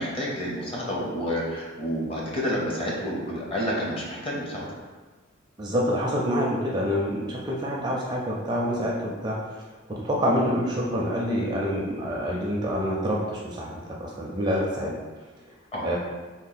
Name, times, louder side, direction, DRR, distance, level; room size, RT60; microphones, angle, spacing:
voice 1, 0.0-4.7 15.7-15.9, equal, 30° left, -4 dB, 0.7 m, -29 dB
voice 2, 5.6-9.4 9.9-15.0 15.8-16.0, equal, 20° right, -3 dB, 0.4 m, -27 dB
3.6 x 2.3 x 4.0 m, 1.3 s
head